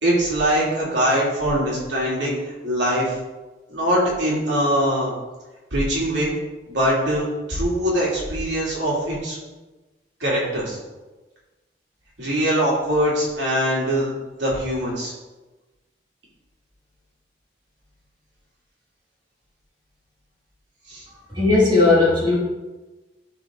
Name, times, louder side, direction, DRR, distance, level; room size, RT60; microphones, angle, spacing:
voice 1, 0.0-2.4 2.6-3.1 3.7-5.1 5.7-6.3 6.7-9.4 10.2-10.8 12.2-14.1 14.4-15.1 20.9-21.0, equal, 75° right, -5 dB, 3.0 m, -22 dB
voice 2, 21.3-22.4, left 3 dB, 25° right, -6 dB, 2.3 m, -16 dB
12.5 x 5.0 x 3.8 m, 1.2 s
head